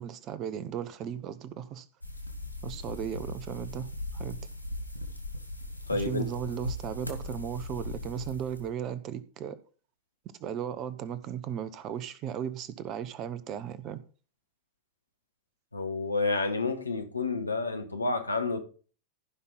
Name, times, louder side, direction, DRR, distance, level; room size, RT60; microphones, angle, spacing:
voice 1, 0.0-1.9 2.6-4.4 5.9-9.6 10.4-14.0, right 9 dB, 35° right, 1.0 m, -36 dB
sound 1, 2.0-8.7, left 1 dB, 90° right, 2.1 m, -39 dB
voice 2, 5.9-6.2 15.7-18.6, left 3 dB, 80° left, 1.3 m, -29 dB
15.0 x 5.6 x 4.0 m
figure-of-eight pair, 90°, 0 cm